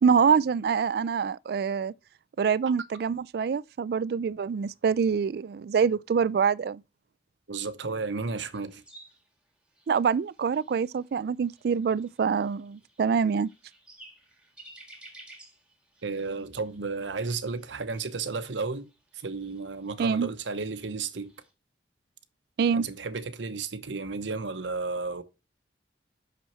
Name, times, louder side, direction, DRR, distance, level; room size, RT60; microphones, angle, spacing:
voice 1, 0.0-1.9 2.4-6.8 9.9-13.5 20.0-20.3 22.6-22.8, right 6 dB, 55° right, 0.3 m, -25 dB
voice 2, 7.5-8.8 16.0-18.9 19.1-21.3 22.7-25.2, right 4 dB, 80° right, 0.8 m, -33 dB
sound 1, 8.5-21.5, right 1 dB, 5° right, 1.6 m, -55 dB
6.2 x 6.0 x 4.3 m
head